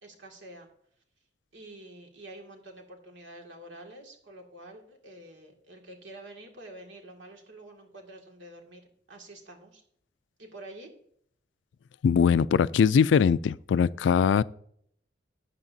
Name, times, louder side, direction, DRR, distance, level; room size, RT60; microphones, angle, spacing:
voice 1, 0.0-0.7 1.5-8.8 9.1-9.8 10.4-10.9, right 1 dB, 85° right, 2.1 m, -47 dB
voice 2, 12.0-14.4, left 6 dB, 80° left, 0.3 m, -21 dB
13.0 x 8.6 x 2.7 m
head